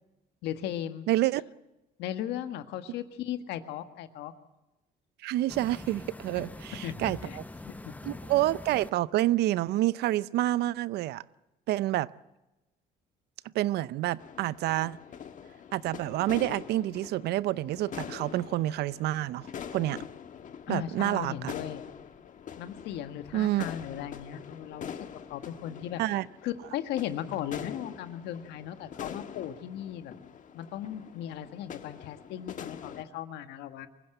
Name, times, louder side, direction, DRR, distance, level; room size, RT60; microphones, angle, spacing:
voice 1, 0.4-1.1 2.0-4.3 6.8-6.9 7.2-7.4 7.6-7.9 20.7-21.8 22.6-25.0 25.3-26.0 26.4-30.1 30.5-33.9, left 11 dB, 85° left, 1.7 m, -37 dB
voice 2, 1.1-1.4 5.2-7.4 8.0-11.2 11.7-12.1 13.5-15.0 15.7-20.0 20.7-21.5 23.3-23.6 26.0-26.2, right 15 dB, 75° right, 0.6 m, -28 dB
sound 1, 5.5-8.9, left 2 dB, 10° left, 1.0 m, -43 dB
sound 2, 14.2-33.0, left 8 dB, 50° left, 1.5 m, -44 dB
24.5 x 16.0 x 8.0 m
cardioid pair, 110°, 17 cm